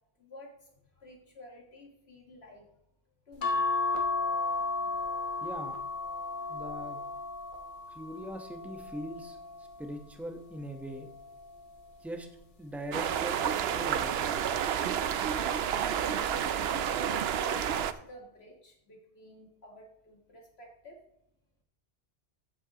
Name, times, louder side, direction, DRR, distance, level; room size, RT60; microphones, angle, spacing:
voice 1, 0.2-2.7 3.3-3.7 4.5-4.6 6.4-6.6 15.7-21.0, left 2 dB, 75° left, 0 dB, 1.9 m, -51 dB
sound 1, 3.4-10.0 10.7-12.1 13.3-13.7 14.1-14.2, left 3 dB, 50° left, 1.3 m, -34 dB
voice 2, 5.4-5.8 6.5-7.0 7.9-11.1 12.0-12.3 12.6-13.4 13.7-14.2, equal, ahead, 4 dB, 0.9 m, -41 dB
sound 2, 12.9-17.9, right 8 dB, 75° right, 0.8 m, -30 dB
14.5 x 7.7 x 2.9 m, 0.79 s
omnidirectional pair, 1.1 m